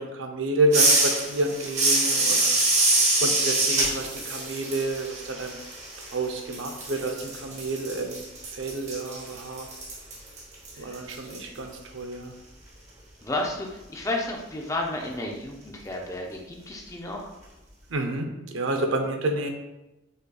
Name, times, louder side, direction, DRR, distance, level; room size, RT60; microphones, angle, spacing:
voice 1, 0.0-2.5 3.2-5.6 6.1-8.2 8.5-9.7 10.8-12.3 17.9-19.5, right 2 dB, 70° right, 4 dB, 0.6 m, -29 dB
sound 1, 0.7-6.2 6.5-11.4, right 2 dB, 35° right, 1.1 m, -25 dB
voice 2, 13.2-17.3, left 2 dB, 15° left, 0 dB, 0.5 m, -32 dB
5.3 x 3.9 x 2.3 m, 1.0 s
head